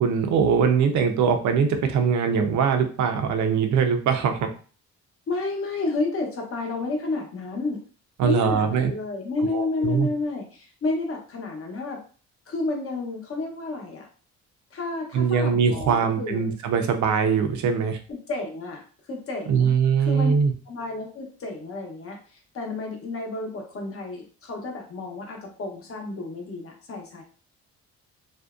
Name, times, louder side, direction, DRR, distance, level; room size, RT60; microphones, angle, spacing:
voice 1, 0.0-4.5 8.2-8.9 9.5-10.1 15.1-18.0 19.5-20.5, right 6 dB, 70° right, 6 dB, 0.6 m, -22 dB
voice 2, 5.3-7.8 8.2-12.0 12.5-14.1 14.7-16.6 18.1-18.8 19.1-19.7 20.0-20.3 20.7-27.2, left 3 dB, 50° left, 1 dB, 0.8 m, -31 dB
2.6 x 2.1 x 2.3 m, 0.39 s
cardioid pair, 90°, 30 cm